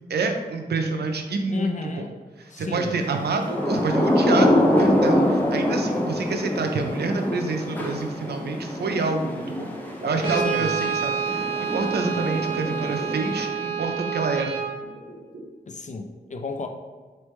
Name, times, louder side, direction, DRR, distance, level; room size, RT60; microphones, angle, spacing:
voice 1, 0.1-1.9 2.6-9.7 10.0-14.6, right 3 dB, 85° right, 4 dB, 0.5 m, -27 dB
voice 2, 1.5-2.1 2.5-3.0 10.4-10.7 15.7-16.7, left 3 dB, 50° left, 5 dB, 0.5 m, -32 dB
Thunder / Rain, 3.2-13.8, left 1 dB, 10° left, 0.7 m, -25 dB
sound 1, 9.7-13.9 14.8-15.4, right 2 dB, 65° right, 1.0 m, -39 dB
Brass instrument, 10.2-14.8, right 6 dB, 35° right, 1.2 m, -28 dB
4.3 x 3.2 x 3.1 m, 1.4 s
wide cardioid pair, 80°, 17 cm